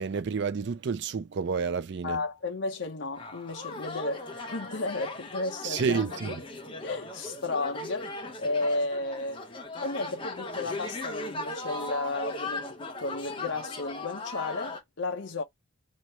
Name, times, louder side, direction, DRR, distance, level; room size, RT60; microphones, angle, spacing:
voice 1, 0.0-2.2 5.6-6.4, right 5 dB, 50° right, 0.4 m, -29 dB
voice 2, 2.0-6.0 6.8-9.4 9.8-15.4, left 3 dB, 55° left, 0.8 m, -33 dB
sound 1, 3.2-14.8, left 2 dB, 25° left, 0.8 m, -38 dB
3.1 x 2.9 x 4.3 m
head